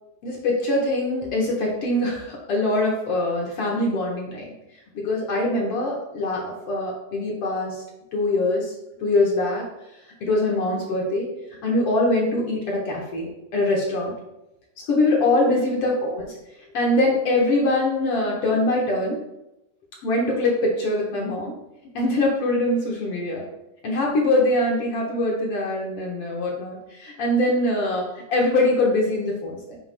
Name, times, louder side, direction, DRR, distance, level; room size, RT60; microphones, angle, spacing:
voice 1, 0.2-4.5 4.9-7.8 8.1-8.7 9.0-9.6 10.2-11.3 11.6-14.1 14.9-16.2 16.7-19.2 20.0-21.5 21.9-23.4 23.8-29.8, left 2 dB, 55° left, -2 dB, 2.1 m, -23 dB
9.6 x 6.9 x 2.3 m, 0.89 s
omnidirectional pair, 3.4 m